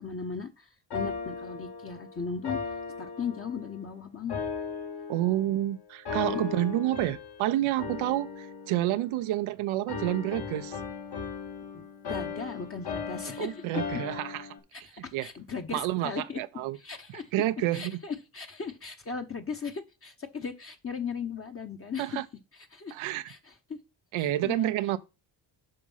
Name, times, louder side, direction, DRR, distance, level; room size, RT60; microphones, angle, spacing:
voice 1, 0.0-2.6 3.0-4.4 6.2-6.4 6.8-6.9 11.7-11.8 12.1-13.6 14.7-16.4 16.7-17.3 17.7-22.2 22.5-22.9 23.3-23.8 24.2-24.7, left 5 dB, 30° left, 1.0 m, -37 dB
sound 1, 0.9-3.8 4.3-5.6 6.1-7.4 7.8-9.5 9.9-14.6, left 5 dB, 55° left, 1.7 m, -37 dB
voice 2, 5.1-10.8 13.4-14.5 14.9-15.3 15.7-16.8 17.1-17.9 22.0-22.2 22.9-23.3 24.1-25.0, right 14 dB, 90° right, 0.7 m, -29 dB
7.8 x 5.2 x 5.6 m
cardioid pair, 100°, 47 cm